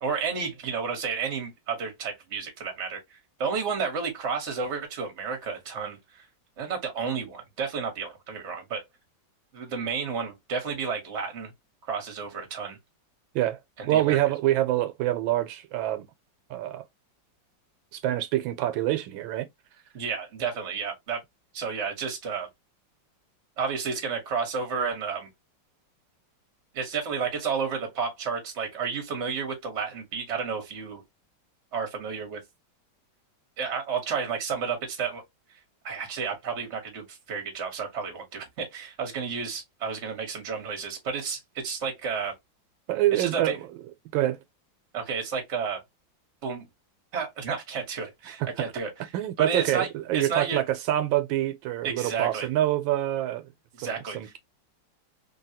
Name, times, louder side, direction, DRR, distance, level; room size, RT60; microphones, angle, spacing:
voice 1, 0.0-6.2 6.6-8.9 9.5-11.5 11.9-12.8 13.8-14.2 19.9-21.2 21.5-22.5 23.6-25.3 26.7-31.0 31.7-32.4 33.6-35.2 35.8-42.3 43.1-43.6 44.9-45.8 46.4-46.7 47.1-48.9 49.4-49.9 50.1-50.6 51.8-52.5 53.7-54.3, right 5 dB, 45° right, 1.3 m, -31 dB
voice 2, 13.9-16.1 16.5-16.8 17.9-19.5 42.9-43.7 44.1-44.4 49.1-53.5 53.8-54.4, right 14 dB, 90° right, 1.4 m, -26 dB
3.5 x 2.3 x 2.7 m
omnidirectional pair, 2.0 m